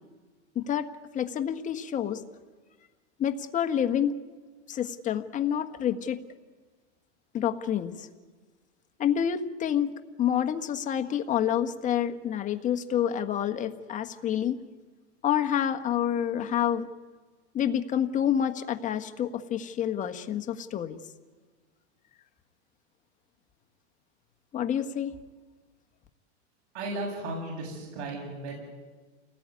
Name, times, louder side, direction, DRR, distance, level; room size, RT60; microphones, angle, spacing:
voice 1, 0.5-2.2 3.2-4.1 4.7-6.2 7.3-8.1 9.0-9.9 10.2-14.6 15.2-16.9 17.5-21.0 24.5-25.2, left 9 dB, 20° left, 7 dB, 1.4 m, -28 dB
voice 2, 26.7-28.6, right 2 dB, 65° right, 0 dB, 8.0 m, -35 dB
28.5 x 19.5 x 9.7 m, 1.4 s
supercardioid pair, 150°, 35 cm